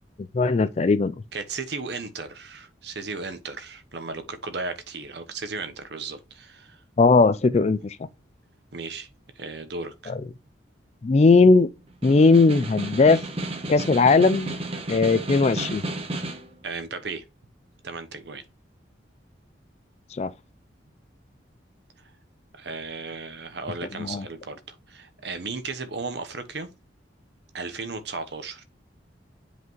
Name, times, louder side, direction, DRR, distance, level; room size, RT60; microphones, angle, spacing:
voice 1, 0.3-1.1 7.0-8.0 10.1-10.2 11.0-11.7 12.0-13.2 13.7-14.6 14.9-15.8 20.2-20.3 24.0-24.2, left 3 dB, 35° left, 0.3 m, -18 dB
voice 2, 1.3-6.8 8.7-9.1 9.4-10.1 16.6-17.2 17.8-18.4 22.5-26.7 27.5-28.6, right 4 dB, 65° right, 1.0 m, -35 dB
Snare drum, 11.9-16.5, right 1 dB, 30° right, 1.0 m, -32 dB
8.0 x 5.0 x 3.1 m
head